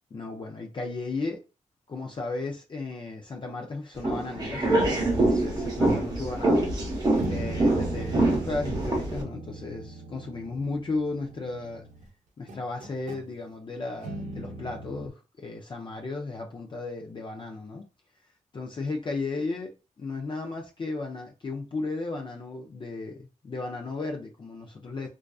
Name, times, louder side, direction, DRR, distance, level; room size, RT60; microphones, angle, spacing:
voice 1, 0.1-1.4 1.9-6.7 7.3-11.9 12.4-17.8 18.5-19.7 20.0-25.1, left 3 dB, 40° left, 0.4 m, -35 dB
sound 1, 4.0-9.2, right 2 dB, 30° right, 0.8 m, -25 dB
sound 2, 7.2-12.1 12.5-13.3 14.0-15.1, right 3 dB, 75° right, 0.6 m, -39 dB
2.4 x 2.3 x 2.3 m
wide cardioid pair, 130°, 13 cm